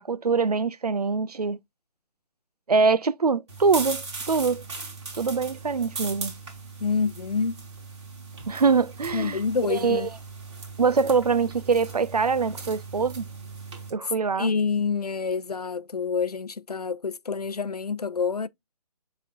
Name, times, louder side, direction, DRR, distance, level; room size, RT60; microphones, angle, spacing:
voice 1, 0.0-1.6 2.7-4.6 5.2-6.4 8.5-9.4 9.7-10.1 10.8-13.3 13.9-14.5, right 5 dB, 75° right, 0.5 m, -24 dB
sound 1, 3.5-13.9, right 4 dB, 45° right, 3.8 m, -38 dB
voice 2, 6.8-7.6 9.1-10.1 14.4-18.5, left 5 dB, 75° left, 0.6 m, -27 dB
11.0 x 4.2 x 2.4 m
figure-of-eight pair, 140°, 20 cm